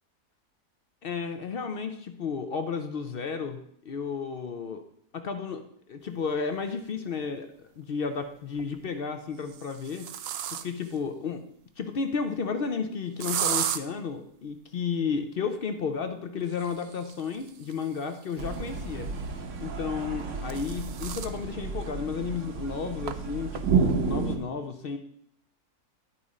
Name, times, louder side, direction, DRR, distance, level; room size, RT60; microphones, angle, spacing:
voice 1, 1.0-3.6 3.9-4.8 5.1-5.6 5.9-10.1 10.5-11.4 11.8-19.1 19.6-25.0, left 5 dB, 60° left, 7 dB, 0.6 m, -32 dB
sound 1, 6.8-6.9 8.4-8.8 9.4-11.0 13.2-13.8 16.4-19.0 20.0-21.4 21.8-21.9 22.3-22.4 23.1-23.2 23.5-23.9, right 9 dB, 80° right, 0.5 m, -35 dB
sound 2, 18.4-24.4, right 5 dB, 60° right, 1.1 m, -31 dB
11.0 x 4.1 x 4.9 m, 0.68 s
omnidirectional pair, 1.6 m